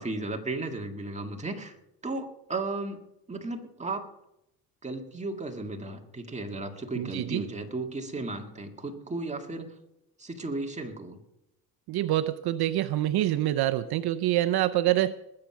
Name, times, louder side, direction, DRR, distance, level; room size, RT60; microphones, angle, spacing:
voice 1, 0.0-1.8 2.0-3.0 3.3-4.1 4.8-9.8 10.2-11.2, right 2 dB, 15° right, 3 dB, 1.9 m, -35 dB
voice 2, 7.0-7.4 11.9-15.1, right 14 dB, 70° right, 11 dB, 0.7 m, -26 dB
20.0 x 7.7 x 5.8 m, 0.84 s
cardioid pair, 115°, 40 cm